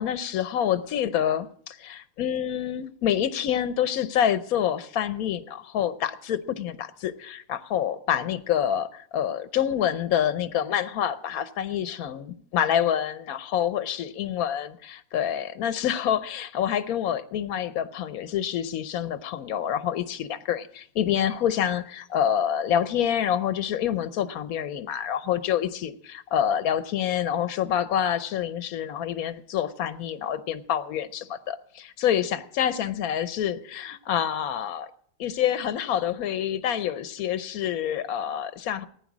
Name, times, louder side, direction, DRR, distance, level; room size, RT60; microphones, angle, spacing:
voice 1, 0.0-34.9 35.2-38.9, left 9 dB, 90° left, 1.2 m, -27 dB
15.5 x 9.9 x 6.0 m
omnidirectional pair, 1.5 m